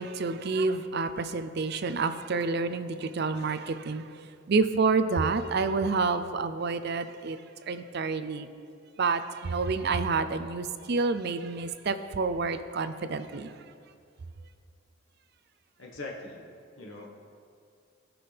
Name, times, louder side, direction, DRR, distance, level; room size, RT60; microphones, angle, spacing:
voice 1, 0.0-4.0 4.5-7.4 7.7-8.5 9.0-13.5, right 4 dB, 50° right, 11 dB, 0.5 m, -28 dB
voice 2, 15.8-16.4 16.8-17.1, left 2 dB, 70° left, -2 dB, 1.3 m, -41 dB
18.0 x 6.1 x 3.4 m, 2.3 s
head